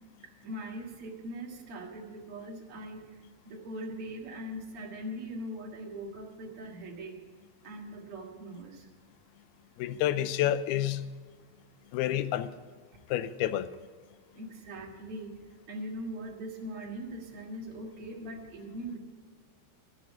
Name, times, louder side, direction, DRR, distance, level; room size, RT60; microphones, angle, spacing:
voice 1, 0.2-3.1 3.5-7.2 7.6-8.9 14.4-15.4 15.7-19.0, right 1 dB, 45° right, -1 dB, 2.2 m, -41 dB
voice 2, 9.8-11.0 11.9-12.5 13.1-13.7, left 12 dB, 85° left, 14 dB, 2.5 m, -29 dB
11.5 x 7.9 x 8.9 m, 1.5 s
omnidirectional pair, 4.4 m